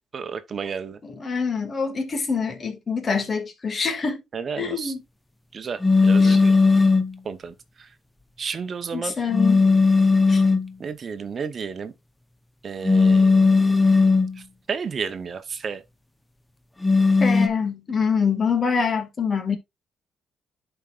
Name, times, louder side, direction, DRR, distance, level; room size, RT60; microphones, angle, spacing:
voice 1, 0.1-1.0 4.3-4.9 5.5-6.5 7.2-7.5 8.4-9.1 10.8-11.9 12.6-13.7 14.7-15.8, right 6 dB, 45° right, 0.9 m, -32 dB
voice 2, 1.0-4.2 4.6-5.0 6.2-6.4 8.9-9.7 10.3-10.4 17.2-19.6, left 5 dB, 40° left, 2.1 m, -25 dB
sound 1, 5.8-7.2 9.3-10.7 12.8-14.4 16.8-17.5, left 4 dB, 10° left, 0.9 m, -17 dB
11.0 x 4.5 x 2.5 m
cardioid pair, 90°, 0 cm